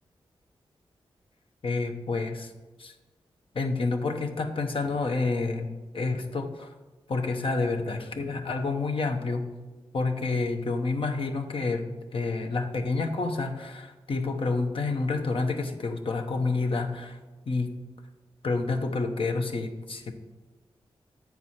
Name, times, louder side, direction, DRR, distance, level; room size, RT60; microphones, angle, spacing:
voice 1, 1.6-2.5 2.8-2.9 3.5-6.7 7.1-9.5 9.9-17.2 17.5-17.7 18.4-20.2, left 3 dB, 60° left, 5 dB, 0.9 m, -29 dB
8.4 x 4.7 x 5.8 m, 1.2 s
cardioid pair, 55°, 10 cm